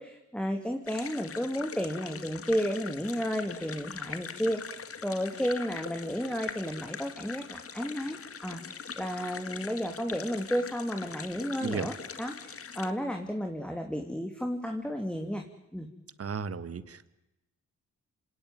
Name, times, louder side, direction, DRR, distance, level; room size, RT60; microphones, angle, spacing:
voice 1, 0.0-15.4 15.7-15.9, equal, 5° left, 4 dB, 2.9 m, -33 dB
sound 1, 0.9-12.9, left 6 dB, 50° left, 1.8 m, -42 dB
voice 2, 16.2-17.1, right 6 dB, 50° right, 15 dB, 1.6 m, -34 dB
27.0 x 18.0 x 9.2 m, 0.97 s
cardioid pair, 65°, 30 cm